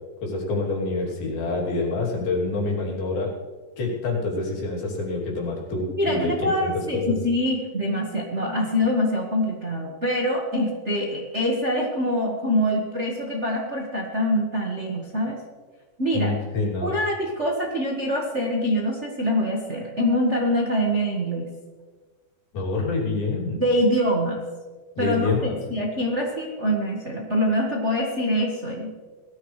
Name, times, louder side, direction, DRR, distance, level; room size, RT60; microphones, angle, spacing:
voice 1, 0.2-3.3 3.8-7.1 16.1-16.9 22.5-23.6 25.0-25.6, left 3 dB, 85° left, -3 dB, 4.8 m, -27 dB
voice 2, 6.0-15.4 16.0-16.4 16.8-21.5 23.6-24.4 25.0-29.1, equal, 60° right, -2 dB, 0.7 m, -24 dB
20.0 x 13.5 x 3.3 m, 1.4 s
omnidirectional pair, 4.2 m